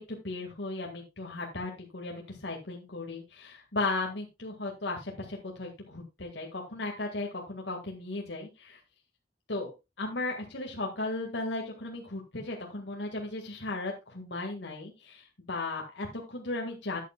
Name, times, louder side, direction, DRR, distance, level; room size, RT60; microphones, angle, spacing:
voice 1, 0.1-8.8 9.5-17.0, left 2 dB, 85° left, 0 dB, 1.9 m, -36 dB
13.0 x 8.4 x 2.3 m, 0.25 s
head